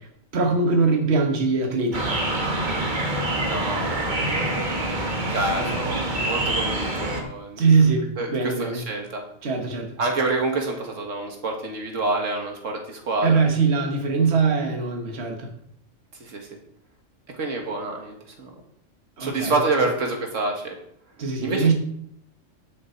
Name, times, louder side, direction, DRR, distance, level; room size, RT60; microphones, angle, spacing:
voice 1, 0.0-2.2 5.6-5.8 7.6-8.8 9.4-9.9 13.2-15.5 19.2-19.6 21.2-21.7, right 4 dB, 55° right, 3 dB, 1.6 m, -22 dB
sound 1, 1.9-7.2, right 1 dB, 40° right, 1.5 m, -26 dB
voice 2, 3.2-4.1 5.3-7.6 8.2-9.2 10.0-13.4 16.2-16.5 17.4-18.5 19.2-20.8 21.4-21.7, right 2 dB, 75° right, 2 dB, 1.9 m, -27 dB
9.5 x 7.4 x 4.5 m, 0.74 s
omnidirectional pair, 1.3 m